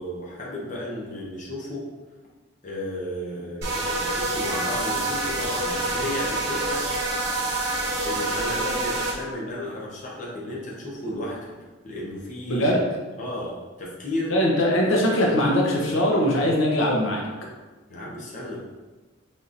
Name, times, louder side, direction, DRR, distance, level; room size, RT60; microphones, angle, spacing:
voice 1, 0.0-1.8 2.6-6.8 8.0-11.5 11.8-12.8 13.2-13.5 13.8-14.3 17.9-18.6, left 1 dB, 40° left, -5 dB, 0.8 m, -33 dB
sound 1, 3.6-9.1, right 2 dB, 55° right, 0.8 m, -27 dB
voice 2, 12.5-12.8 14.3-17.2, equal, 75° left, -2 dB, 0.8 m, -21 dB
4.1 x 3.6 x 2.5 m, 1.2 s
head